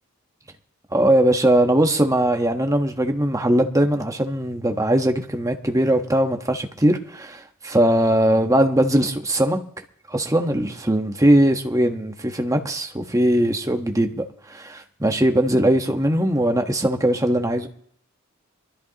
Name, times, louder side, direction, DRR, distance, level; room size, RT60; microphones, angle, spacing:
voice 1, 0.9-9.6 10.1-17.7, right 1 dB, 15° right, 4 dB, 1.3 m, -20 dB
23.5 x 13.5 x 3.0 m, 0.64 s
head